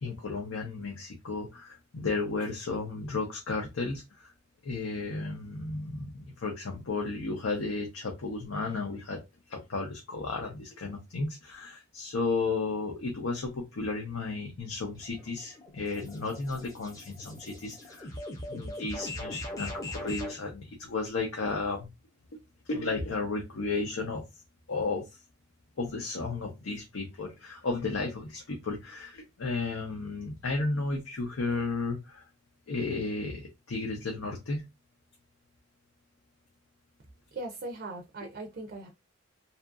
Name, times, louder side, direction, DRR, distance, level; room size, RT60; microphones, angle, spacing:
voice 1, 0.0-4.3 4.6-9.2 9.5-18.1 18.5-21.9 22.7-24.2 24.7-25.0 25.8-32.2 32.7-34.6, left 3 dB, 85° left, 0.6 m, -33 dB
sound 1, 14.9-20.4, left 1 dB, 15° left, 0.5 m, -40 dB
voice 2, 37.3-38.9, right 2 dB, 50° right, 0.4 m, -39 dB
2.7 x 2.4 x 2.4 m
head